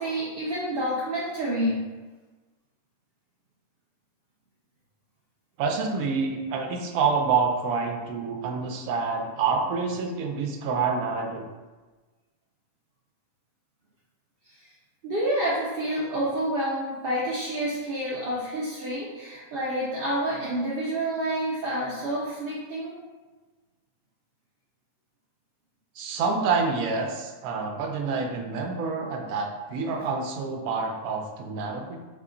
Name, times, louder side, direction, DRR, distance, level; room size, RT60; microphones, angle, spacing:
voice 1, 0.0-1.8 15.0-23.0, right 1 dB, 55° right, -6 dB, 0.6 m, -28 dB
voice 2, 5.6-11.5 26.0-32.0, right 5 dB, 75° right, 3 dB, 1.0 m, -27 dB
3.5 x 2.3 x 3.7 m, 1.3 s
omnidirectional pair, 1.5 m